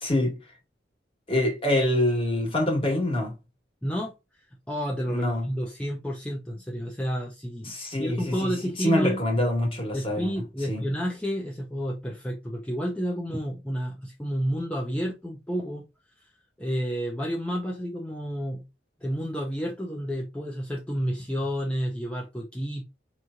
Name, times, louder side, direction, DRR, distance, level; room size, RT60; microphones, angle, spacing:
voice 1, 0.0-0.4 1.3-3.3 5.1-5.4 7.6-8.5 8.8-10.3 10.7-10.8, left 1 dB, 30° left, 1.5 m, -25 dB
voice 2, 3.8-4.1 4.7-9.2 9.9-15.8 16.6-18.7 19.0-22.9, equal, 5° left, 0.5 m, -30 dB
4.6 x 3.0 x 2.5 m
head